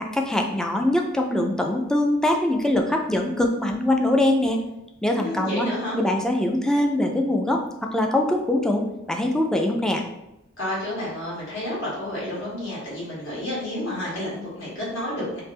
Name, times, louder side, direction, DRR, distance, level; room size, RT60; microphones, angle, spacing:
voice 1, 0.0-4.6 5.0-5.7 5.9-10.0, left 1 dB, 5° left, 1 dB, 0.3 m, -23 dB
voice 2, 5.2-6.0 10.6-15.4, left 1 dB, 65° left, -7 dB, 1.5 m, -30 dB
3.4 x 2.8 x 3.2 m, 0.90 s
head